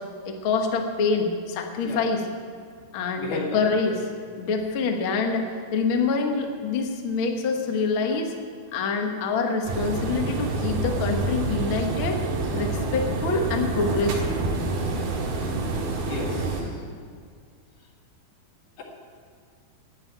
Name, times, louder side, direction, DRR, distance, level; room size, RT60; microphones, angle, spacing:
voice 1, 0.2-2.2 2.9-4.0 4.4-5.5 5.7-8.3 8.7-12.2 12.5-14.4, left 4 dB, 65° left, 3 dB, 1.3 m, -26 dB
voice 2, 3.2-4.0 16.1-16.7 18.8-18.9, left 3 dB, 80° left, -1 dB, 3.9 m, -33 dB
sound 1, 9.6-16.6, right 2 dB, 80° right, 3.7 m, -27 dB
11.5 x 9.3 x 9.0 m, 2.1 s
omnidirectional pair, 4.3 m